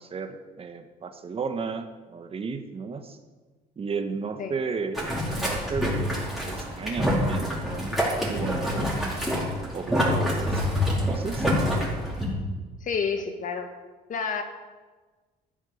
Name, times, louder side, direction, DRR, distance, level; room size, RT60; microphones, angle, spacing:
voice 1, 0.0-3.2 3.8-10.7 11.0-11.5, right 5 dB, 35° right, 7 dB, 1.2 m, -34 dB
Boiling, 4.9-12.3, equal, ahead, 4.9 m, -26 dB
voice 2, 12.8-13.7 14.1-14.4, left 5 dB, 50° left, 6 dB, 1.8 m, -29 dB
14.0 x 8.3 x 7.0 m, 1.3 s
cardioid pair, 110°, 17 cm